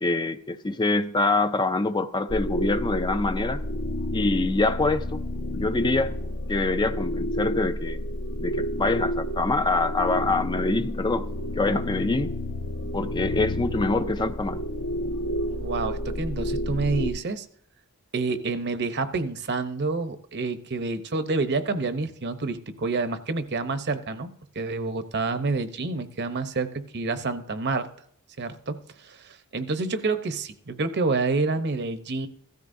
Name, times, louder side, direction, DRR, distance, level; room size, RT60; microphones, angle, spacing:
voice 1, 0.0-3.6 4.1-5.2 5.5-6.1 6.5-8.0 8.4-11.3 11.5-12.3 12.9-14.6, left 3 dB, 20° left, 0.4 m, -25 dB
sound 1, 2.3-17.1, left 1 dB, 60° left, 0.9 m, -30 dB
voice 2, 15.6-17.4 18.1-24.3 24.5-27.9 28.4-32.3, right 3 dB, 50° right, 0.8 m, -28 dB
16.0 x 13.5 x 2.6 m
head